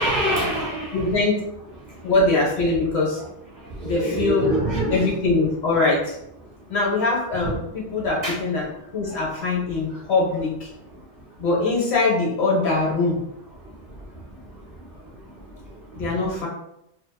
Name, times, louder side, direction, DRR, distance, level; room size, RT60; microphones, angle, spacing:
voice 1, 0.0-1.0 3.8-5.1 8.2-8.3, right 1 dB, 45° right, -5 dB, 0.7 m, -24 dB
voice 2, 0.9-1.4 2.0-3.2 3.8-4.5 4.9-6.2 6.7-10.7 11.4-13.2 15.9-16.5, left 3 dB, 70° left, -4 dB, 1.1 m, -22 dB
2.4 x 2.4 x 2.2 m, 0.80 s
omnidirectional pair, 1.2 m